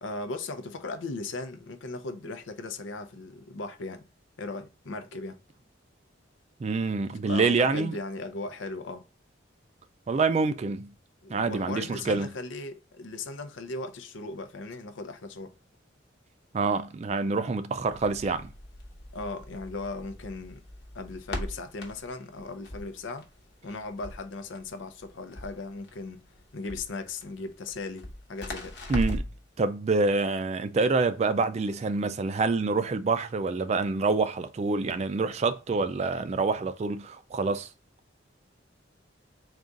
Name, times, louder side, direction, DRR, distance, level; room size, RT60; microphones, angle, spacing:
voice 1, 0.0-4.1 4.4-5.4 7.0-9.0 11.2-15.5 19.1-20.6 20.9-23.3 23.6-26.2 26.5-28.8, left 3 dB, 80° left, 0.6 m, -37 dB
voice 2, 6.6-8.0 10.1-10.9 11.3-12.3 16.5-18.5 28.9-29.2 29.6-37.7, right 4 dB, 35° right, 0.3 m, -26 dB
Crackle, 17.9-29.4, left 1 dB, 60° left, 0.9 m, -40 dB
3.8 x 2.4 x 3.8 m
head